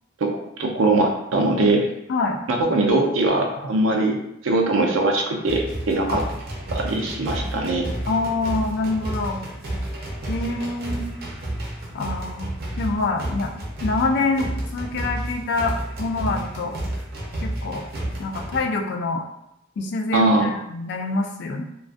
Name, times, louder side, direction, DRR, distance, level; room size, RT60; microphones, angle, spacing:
voice 1, 0.6-1.9 2.5-4.2 4.4-6.2 6.7-7.9 20.1-20.5, right 2 dB, 90° right, 2 dB, 0.5 m, -21 dB
sound 1, 5.4-18.6, right 1 dB, 50° right, 0.6 m, -31 dB
voice 2, 8.1-9.4 10.3-11.0 11.9-12.5 12.8-13.5 13.8-16.8 17.4-17.8 18.2-19.2 19.8-21.6, left 3 dB, 60° left, 3 dB, 0.3 m, -25 dB
2.3 x 2.3 x 2.4 m, 0.81 s
head